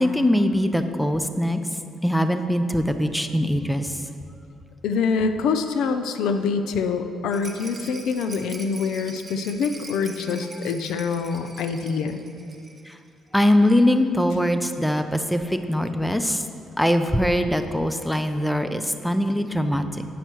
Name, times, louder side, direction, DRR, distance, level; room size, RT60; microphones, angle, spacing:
voice 1, 0.0-1.6 2.0-4.0 12.9-13.0 13.3-16.4 16.8-20.0, left 1 dB, 5° left, 8 dB, 0.6 m, -22 dB
voice 2, 4.8-12.2, left 5 dB, 85° left, 8 dB, 0.5 m, -25 dB
Rattle, 7.3-13.0 13.3-13.4 13.6-13.7, right 3 dB, 20° right, 1.0 m, -43 dB
9.3 x 5.4 x 6.1 m, 2.4 s
cardioid pair, 90°, 0 cm